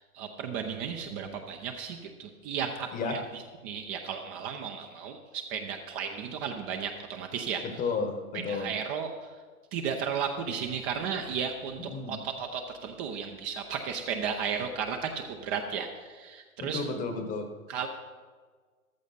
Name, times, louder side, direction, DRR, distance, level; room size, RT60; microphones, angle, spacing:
voice 1, 0.0-7.6 8.5-9.3 9.7-16.8 17.7-17.9, right 7 dB, 25° right, 5 dB, 0.8 m, -34 dB
voice 2, 7.6-8.7 11.8-12.2 16.6-17.5, left 4 dB, 20° left, 6 dB, 1.2 m, -32 dB
14.0 x 13.0 x 4.1 m, 1.5 s
figure-of-eight pair, 115°, 44 cm